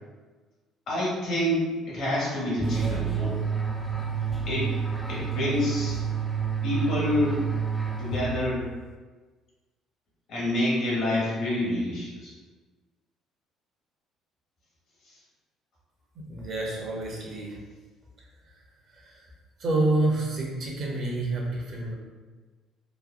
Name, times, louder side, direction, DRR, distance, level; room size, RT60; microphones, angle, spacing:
voice 1, 0.9-3.4 4.5-4.7 5.1-6.0 6.6-7.4 8.0-8.7 10.3-12.3, left 1 dB, 70° left, -5 dB, 1.3 m, -27 dB
sound 1, 2.6-8.7, right 6 dB, 5° right, 0.3 m, -29 dB
voice 2, 16.2-17.6 18.9-19.2 19.6-21.9, right 2 dB, 55° right, -2 dB, 0.7 m, -28 dB
3.0 x 2.1 x 2.5 m, 1.3 s
supercardioid pair, 85°, 0 cm